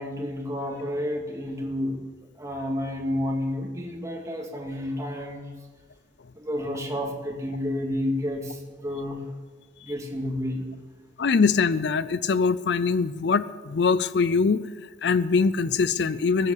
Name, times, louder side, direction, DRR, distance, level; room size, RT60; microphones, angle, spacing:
voice 1, 0.0-2.0 2.4-5.5 6.3-9.2 9.8-10.7, left 1 dB, 15° right, 1 dB, 2.1 m, -30 dB
voice 2, 11.2-14.6 15.0-16.5, left 5 dB, 65° left, 16 dB, 0.5 m, -23 dB
20.5 x 8.2 x 6.7 m, 1.4 s
head